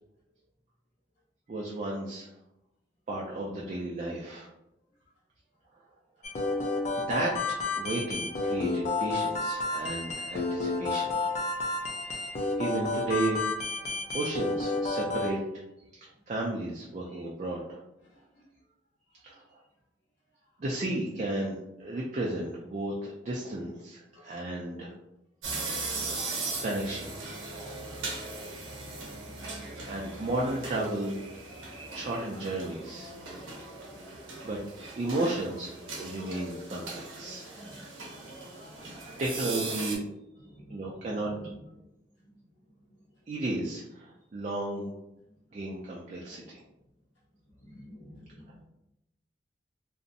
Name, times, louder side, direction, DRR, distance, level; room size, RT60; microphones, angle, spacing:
voice 1, 1.5-2.3 3.1-4.5 7.0-13.4 14.1-15.6 15.9-17.8 19.2-19.6 20.6-24.9 25.9-26.0 26.6-27.1 29.8-31.2 31.9-33.2 34.1-34.6 34.9-40.0 40.7-41.3 43.3-44.9 45.5-46.6, right 2 dB, 35° right, -3 dB, 0.3 m, -34 dB
sound 1, 6.2-15.3, left 3 dB, 40° left, 0.4 m, -31 dB
voice 2, 18.0-18.4 24.1-24.3 37.5-37.9 38.5-38.7 40.4-40.8 41.1-41.5 47.6-48.6, equal, 70° left, -7 dB, 0.9 m, -49 dB
sound 2, 25.4-40.0, right 3 dB, 85° right, 0.7 m, -39 dB
2.5 x 2.0 x 2.5 m, 0.87 s
head